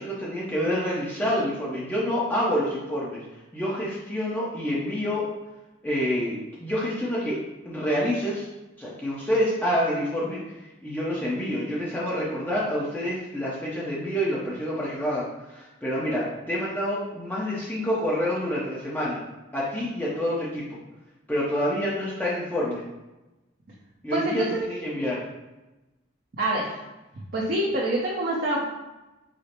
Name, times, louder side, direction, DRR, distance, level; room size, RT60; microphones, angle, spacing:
voice 1, 0.0-3.2 3.5-5.3 5.8-7.4 7.6-8.5 8.8-10.6 10.8-19.2 19.5-20.8 21.3-22.8 24.0-25.2, equal, 10° left, -7 dB, 0.6 m, -27 dB
voice 2, 24.1-24.5 26.4-26.8 27.3-28.7, right 1 dB, 50° right, -6 dB, 0.7 m, -26 dB
5.0 x 2.0 x 4.3 m, 1.0 s
head